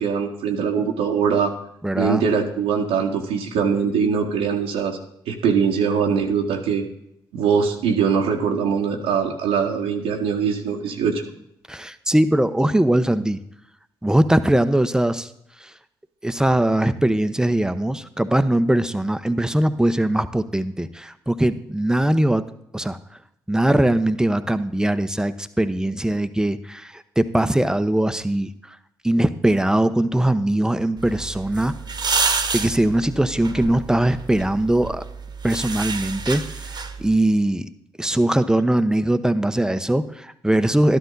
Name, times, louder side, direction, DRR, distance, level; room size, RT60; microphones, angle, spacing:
voice 1, 0.0-1.5 2.0-5.0 5.3-6.8 7.3-11.2, right 6 dB, 75° right, -1 dB, 1.4 m, -22 dB
voice 2, 1.8-2.2 11.7-13.4 14.0-15.3 15.6-15.7 16.2-22.4 22.7-23.0 23.5-28.8 29.0-31.7 32.5-35.0 35.4-36.7 37.0-37.7 38.0-41.0, right 1 dB, 5° right, 11 dB, 0.9 m, -21 dB
sound 1, 31.0-37.2, right 4 dB, 45° right, 1.4 m, -29 dB
12.5 x 11.5 x 4.0 m, 0.76 s
hypercardioid pair, 45°, 10 cm